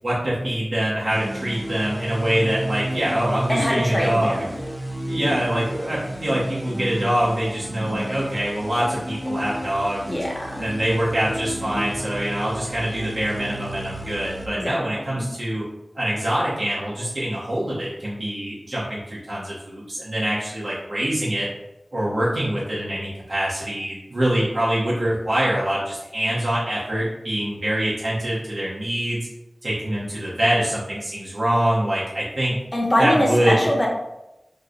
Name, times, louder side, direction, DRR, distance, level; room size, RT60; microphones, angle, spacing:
voice 1, 0.0-4.4 5.1-10.1 10.6-15.6 15.9-21.5 21.9-29.3 29.6-32.5 33.0-33.7, right 1 dB, 70° right, -8 dB, 0.9 m, -24 dB
sound 1, 1.1-14.5, right 1 dB, 5° right, 0.5 m, -32 dB
voice 2, 3.5-4.6 10.1-10.6 14.5-15.3 32.7-33.9, equal, 25° left, -1 dB, 0.7 m, -23 dB
3.2 x 2.1 x 3.8 m, 0.93 s
wide cardioid pair, 70°, 0 cm